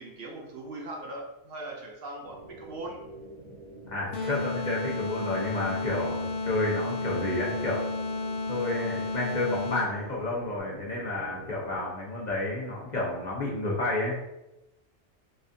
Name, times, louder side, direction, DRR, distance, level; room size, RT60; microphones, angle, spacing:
voice 1, 0.0-3.0, right 2 dB, 65° right, 0 dB, 0.7 m, -40 dB
sound 1, 2.2-11.8, right 2 dB, 80° right, 1.1 m, -46 dB
voice 2, 3.9-7.8 8.5-14.2, left 2 dB, 45° left, -4 dB, 0.7 m, -30 dB
sound 2, 4.1-10.1, left 3 dB, 80° left, 0.9 m, -32 dB
4.1 x 2.5 x 2.5 m, 0.95 s
omnidirectional pair, 1.2 m